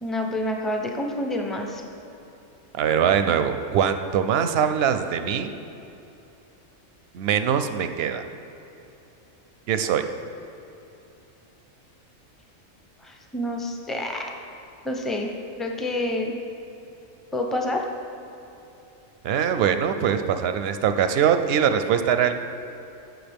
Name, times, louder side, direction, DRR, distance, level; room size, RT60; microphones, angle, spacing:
voice 1, 0.0-1.8 13.0-14.3 14.8-15.3 15.6-16.3 17.3-17.8, left 1 dB, ahead, 2 dB, 0.4 m, -28 dB
voice 2, 2.8-5.5 7.1-8.2 9.7-10.1 19.2-22.3, right 8 dB, 65° right, 9 dB, 0.6 m, -22 dB
15.5 x 6.2 x 3.5 m, 3.0 s
omnidirectional pair, 1.4 m